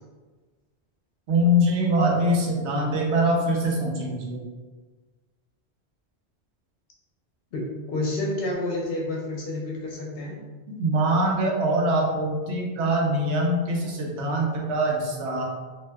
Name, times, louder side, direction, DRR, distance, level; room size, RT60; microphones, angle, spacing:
voice 1, 1.3-4.4 10.7-15.4, equal, 80° right, -1 dB, 0.9 m, -23 dB
voice 2, 7.5-10.4, left 2 dB, 65° left, -2 dB, 0.8 m, -29 dB
2.7 x 2.1 x 3.3 m, 1.3 s
omnidirectional pair, 1.1 m